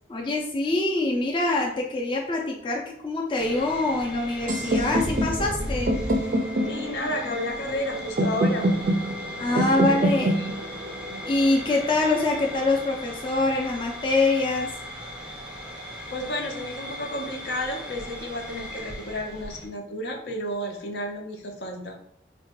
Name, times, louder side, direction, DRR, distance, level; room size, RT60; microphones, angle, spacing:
voice 1, 0.1-6.0 9.4-10.3 11.3-14.7, left 2 dB, 30° left, -1 dB, 0.4 m, -24 dB
sound 1, 3.4-19.7, equal, 5° right, 0.7 m, -37 dB
sound 2, 4.5-12.4, right 1 dB, 50° right, 0.4 m, -27 dB
voice 2, 6.7-8.7 9.5-9.8 10.4-10.5 16.1-22.0, left 1 dB, 75° left, 2 dB, 0.6 m, -32 dB
3.7 x 2.2 x 2.9 m, 0.68 s
head